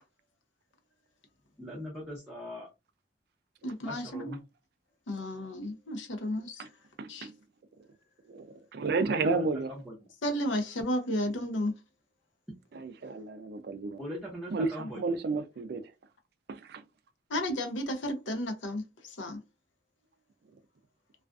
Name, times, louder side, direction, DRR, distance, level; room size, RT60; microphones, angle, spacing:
voice 1, 1.6-2.7 3.8-4.4 9.0-9.9 14.0-15.0, equal, 5° right, 0.6 m, -40 dB
voice 2, 3.6-4.3 5.1-6.7 7.1-7.3 10.2-11.7 14.8-14.9 17.3-19.4, left 1 dB, 75° left, 0.6 m, -33 dB
voice 3, 7.0-7.3 8.3-9.7 12.7-14.0 14.5-15.9 16.5-16.8, right 3 dB, 55° right, 0.3 m, -32 dB
2.4 x 2.3 x 2.3 m
head